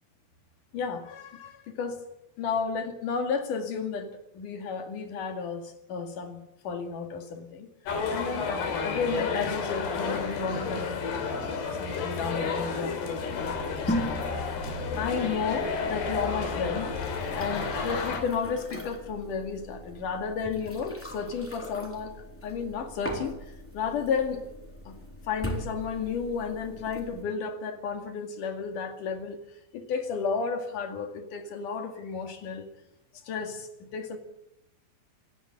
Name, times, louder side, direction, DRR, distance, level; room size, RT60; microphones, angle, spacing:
voice 1, 0.7-2.0 2.4-7.7 8.1-8.5 8.8-11.0 11.4-14.1 14.4-14.5 15.0-17.0 17.4-23.4 23.7-24.4 24.9-25.0 25.2-29.4 29.7-32.7 33.2-34.2, left 5 dB, 55° left, 5 dB, 3.5 m, -32 dB
sound 1, 7.9-18.2, left 5 dB, 75° left, 4.9 m, -31 dB
sound 2, 13.4-27.2, equal, 5° left, 3.1 m, -39 dB
25.5 x 11.0 x 9.7 m, 0.85 s
omnidirectional pair, 4.7 m